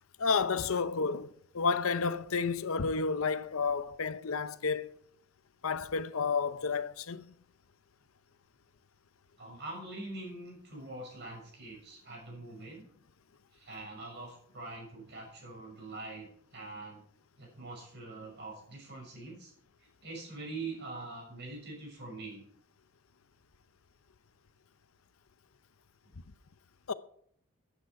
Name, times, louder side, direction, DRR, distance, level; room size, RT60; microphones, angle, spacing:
voice 1, 0.2-4.9 5.6-7.3 26.9-27.0, left 5 dB, 80° left, 0.7 m, -31 dB
voice 2, 9.4-12.9 13.5-17.0 17.4-19.5 19.8-22.5, right 2 dB, 50° right, 6.3 m, -44 dB
14.5 x 9.1 x 4.8 m
head